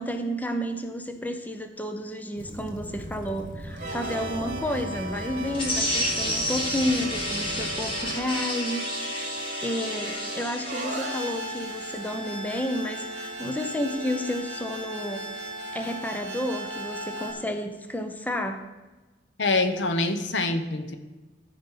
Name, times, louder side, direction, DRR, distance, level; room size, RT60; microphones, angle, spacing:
voice 1, 0.0-9.2 9.6-15.3 15.7-18.6, left 1 dB, 10° left, 6 dB, 0.7 m, -31 dB
Waves surf / Splash splatter / Trickle dribble, 2.4-8.2, equal, 50° left, 1.4 m, -40 dB
sound 1, 3.7-17.3, right 1 dB, 45° right, 2.1 m, -36 dB
sound 2, 5.5-12.0, equal, 30° left, 2.1 m, -31 dB
voice 2, 19.4-21.0, left 3 dB, 85° left, 8 dB, 0.9 m, -25 dB
13.5 x 5.2 x 5.6 m, 1.2 s
head